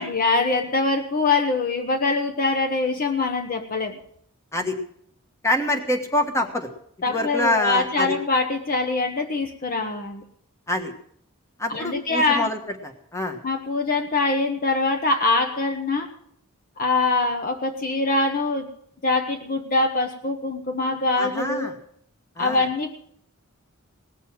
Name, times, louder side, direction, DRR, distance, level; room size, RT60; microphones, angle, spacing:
voice 1, 0.0-4.0 7.0-10.2 11.7-12.5 13.4-16.1 16.8-18.7 19.0-21.7 22.4-22.9, left 3 dB, 40° left, 5 dB, 1.0 m, -23 dB
voice 2, 5.4-6.7 7.1-8.2 10.7-10.9 11.6-12.6 12.8-13.4 21.2-21.7 22.4-22.6, left 1 dB, 15° left, 5 dB, 1.3 m, -25 dB
18.5 x 6.8 x 7.5 m, 0.68 s
head